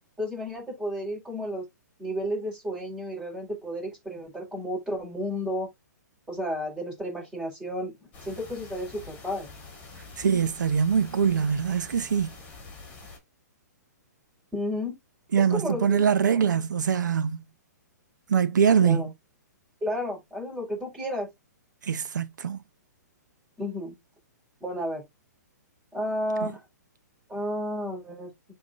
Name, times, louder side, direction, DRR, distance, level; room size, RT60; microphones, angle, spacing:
voice 1, 0.2-1.7 2.0-5.7 6.3-9.5 14.5-15.0 15.4-16.4 18.8-19.1 19.8-21.3 23.6-23.9 24.6-25.0 25.9-26.6 27.3-28.3, equal, 10° right, 4.5 m, -32 dB
sound 1, 8.1-13.2, left 4 dB, 15° left, 3.0 m, -46 dB
voice 2, 10.2-12.3 15.3-17.4 18.3-19.0 21.9-22.6, right 7 dB, 85° right, 0.8 m, -23 dB
11.0 x 3.6 x 2.5 m
hypercardioid pair, 150°, 10 cm